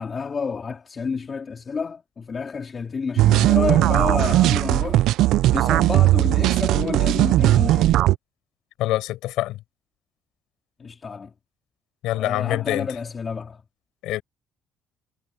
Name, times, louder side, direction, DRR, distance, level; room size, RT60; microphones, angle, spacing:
voice 1, 0.0-5.0 5.5-8.0 10.8-11.3 12.1-13.6, left 5 dB, 25° left, 3.8 m, -29 dB
sound 1, 3.2-8.2, right 15 dB, 65° right, 0.4 m, -18 dB
voice 2, 8.8-9.6 12.0-12.9 14.0-14.2, left 16 dB, 75° left, 4.9 m, -25 dB
cardioid pair, 170°, 0 cm